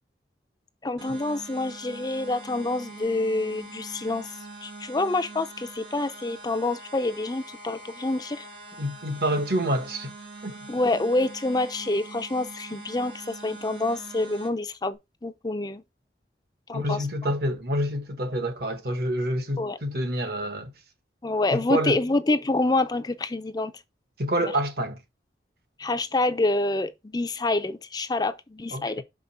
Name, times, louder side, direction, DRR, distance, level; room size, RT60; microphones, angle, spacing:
voice 1, 0.8-4.3 4.6-8.5 10.7-15.8 16.7-17.1 19.6-19.8 21.2-23.7 24.4-24.5 25.8-29.0, left 2 dB, 25° left, 0.5 m, -27 dB
sound 1, 1.0-14.5, right 2 dB, 80° right, 3.0 m, -43 dB
voice 2, 8.8-10.1 10.4-10.6 16.7-20.7 21.5-22.0 24.2-25.0 28.7-28.9, equal, 60° right, 1.3 m, -27 dB
6.1 x 5.1 x 4.1 m
head